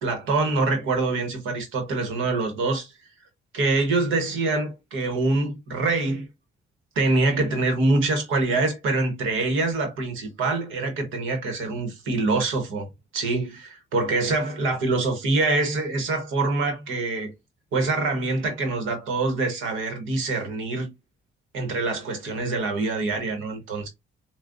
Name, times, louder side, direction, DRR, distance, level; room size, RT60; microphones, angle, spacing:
voice 1, 0.0-2.9 3.5-6.3 6.9-12.8 13.1-17.3 17.7-20.9 21.5-23.9, right 3 dB, 85° right, 1.3 m, -25 dB
6.2 x 2.3 x 2.5 m
cardioid pair, 90°, 20 cm